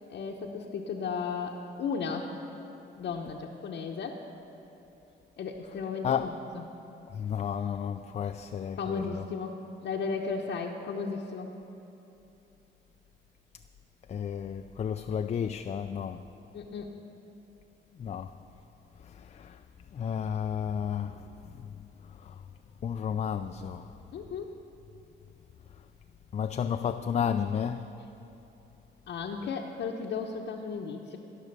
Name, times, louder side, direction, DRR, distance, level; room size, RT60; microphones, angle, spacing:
voice 1, 0.1-2.3 3.0-4.2 5.4-6.6 8.8-11.5 16.5-16.9 24.1-24.5 29.1-31.2, left 5 dB, 65° left, 0.9 m, -35 dB
voice 2, 7.1-9.2 14.1-16.2 18.0-18.3 19.3-19.6 19.9-21.2 22.3-22.4 22.8-23.8 26.3-27.9, left 8 dB, 35° left, 0.4 m, -32 dB
18.0 x 6.2 x 6.7 m
cardioid pair, 90°, 20 cm